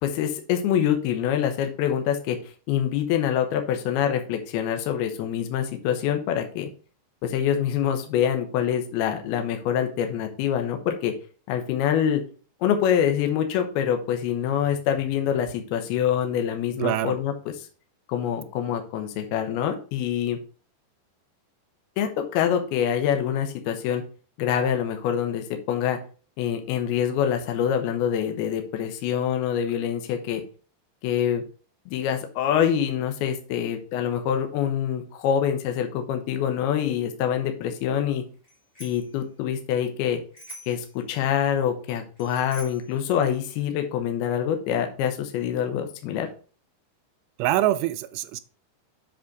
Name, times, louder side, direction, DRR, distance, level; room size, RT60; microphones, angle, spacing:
voice 1, 0.0-2.4 2.7-6.7 7.2-11.1 11.5-12.2 12.6-17.5 18.1-20.4 22.0-24.0 24.4-26.0 26.4-30.4 31.0-31.4 31.9-38.2 38.8-40.2 40.7-46.3, left 9 dB, 75° left, 6 dB, 2.7 m, -25 dB
voice 2, 16.8-17.1 47.4-48.4, right 14 dB, 85° right, 11 dB, 2.5 m, -24 dB
Bicycle bell, 38.4-39.1 40.3-40.9 42.2-42.9, right 1 dB, 40° left, 0.7 m, -44 dB
7.7 x 4.3 x 4.7 m, 0.38 s
omnidirectional pair, 5.0 m